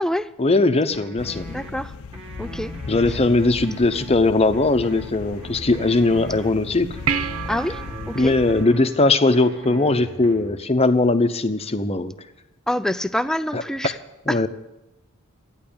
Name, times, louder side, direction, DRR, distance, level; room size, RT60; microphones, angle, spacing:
voice 1, 0.4-1.5 2.9-7.0 8.1-12.1 13.5-13.6 14.3-14.5, left 2 dB, 30° left, 9 dB, 0.8 m, -19 dB
sound 1, 0.9-1.7 2.1-4.1 4.5-6.5 6.9-8.9 9.3-10.5, right 1 dB, 25° right, 1.9 m, -40 dB
sound 2, 1.2-8.7, left 4 dB, 80° left, 0.6 m, -37 dB
voice 2, 1.5-1.9 2.4-2.7 7.5-7.8 8.1-8.3 12.7-14.0 14.3-14.5, equal, 5° left, 13 dB, 0.4 m, -26 dB
sound 3, 7.1-9.8 13.8-13.9, right 7 dB, 75° right, 0.7 m, -30 dB
14.0 x 9.8 x 8.7 m, 0.93 s
head